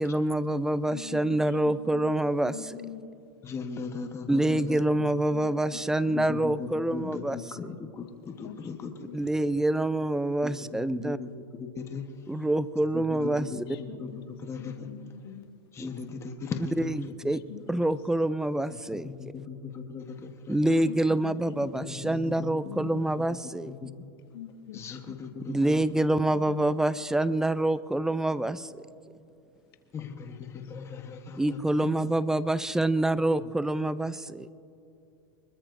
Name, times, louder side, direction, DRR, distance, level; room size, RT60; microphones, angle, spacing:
voice 1, 0.0-2.8 4.3-7.4 9.1-11.2 12.3-13.5 15.8-15.9 16.8-17.4 17.7-19.1 20.5-23.7 25.5-28.9 31.4-34.5, right 1 dB, 5° right, 16 dB, 0.4 m, -26 dB
voice 2, 0.9-1.4 1.6-2.1 2.4-3.0 4.5-5.0 5.3-6.3 8.4-8.6 9.1-9.2 13.2-14.2 14.6-15.5 17.5-17.6 20.9-21.7 22.0-22.1 22.6-23.0 24.3-25.1 26.5-26.6 31.8-31.9, left 10 dB, 70° left, 5 dB, 1.7 m, -43 dB
voice 3, 3.4-4.8 6.3-8.9 10.4-11.3 11.6-12.3 12.9-14.1 14.4-14.9 15.7-17.1 18.7-18.8 19.0-20.6 21.8-22.7 23.7-24.1 24.7-26.0 29.9-31.9 33.4-33.5, left 5 dB, 20° left, 5 dB, 1.1 m, -38 dB
25.0 x 21.5 x 2.6 m, 2.6 s
hypercardioid pair, 125°, 13 cm